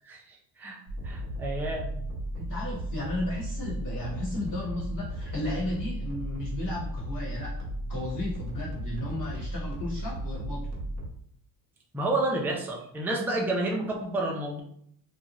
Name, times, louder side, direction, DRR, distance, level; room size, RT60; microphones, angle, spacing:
voice 1, 0.0-1.9 11.9-14.6, right 2 dB, 5° right, -1 dB, 0.4 m, -30 dB
sound 1, 0.9-11.1, right 1 dB, 40° right, 0.8 m, -35 dB
voice 2, 2.3-7.5 7.9-10.7, left 1 dB, 45° left, -6 dB, 1.1 m, -34 dB
2.6 x 2.3 x 3.0 m, 0.68 s
cardioid pair, 105°, 43 cm